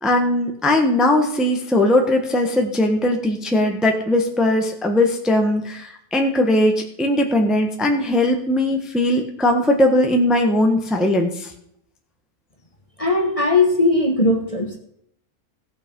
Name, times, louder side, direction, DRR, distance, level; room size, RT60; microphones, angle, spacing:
voice 1, 0.0-11.5, left 1 dB, ahead, 2 dB, 1.2 m, -19 dB
voice 2, 13.0-14.8, left 2 dB, 25° left, 2 dB, 1.3 m, -18 dB
16.5 x 6.0 x 5.4 m, 0.71 s
omnidirectional pair, 1.7 m